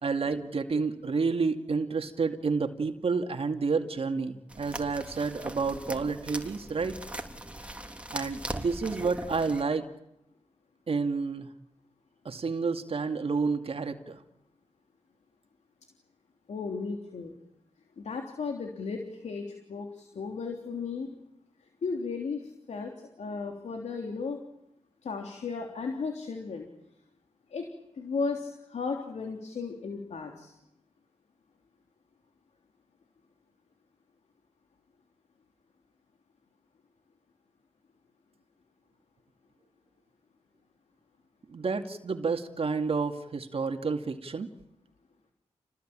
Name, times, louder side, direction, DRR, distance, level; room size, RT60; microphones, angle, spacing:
voice 1, 0.0-6.9 8.1-9.9 10.9-11.5 12.2-14.2 41.5-44.5, right 4 dB, 60° right, 6 dB, 2.3 m, -30 dB
sound 1, 4.5-9.6, right 1 dB, 10° right, 3.3 m, -40 dB
voice 2, 16.5-17.4 18.0-21.1 21.8-24.4 25.0-26.7 27.5-27.6 27.9-30.5, left 4 dB, 75° left, 3 dB, 3.4 m, -35 dB
29.0 x 19.0 x 8.9 m, 0.85 s
cardioid pair, 60°, 11 cm